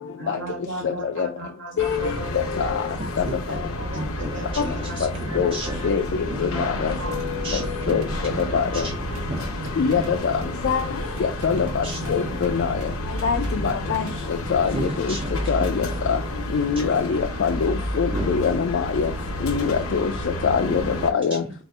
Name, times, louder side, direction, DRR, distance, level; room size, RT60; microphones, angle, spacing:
voice 1, 0.2-2.3 3.4-5.7 6.5-7.2 8.3-8.6, right 2 dB, 60° right, 0.9 m, -37 dB
voice 2, 0.8-1.3 1.8-2.1 2.6-2.9 3.2-3.3 5.0-5.1 5.4-5.5 5.8-6.9 7.9-8.0 8.5-8.8 9.8-10.3 10.6-10.8 11.2-12.7 13.2-14.0 14.5-15.1 15.5-16.2 16.5-19.1 19.4-20.1 20.4-20.8 21.1-21.4, left 6 dB, 60° left, 0.4 m, -23 dB
sound 1, 1.8-21.1, left 1 dB, 85° left, 0.8 m, -30 dB
voice 3, 3.0-3.6 3.9-5.9 6.2-9.0 9.3-10.1 11.8-12.3 14.7-16.0 16.8-16.9 18.1-18.3 18.6-18.7 20.6-20.8 21.4-21.5, right 1 dB, 25° right, 0.5 m, -34 dB
sound 2, 6.1-14.2, right 3 dB, 85° right, 0.4 m, -38 dB
4.1 x 2.5 x 3.3 m
head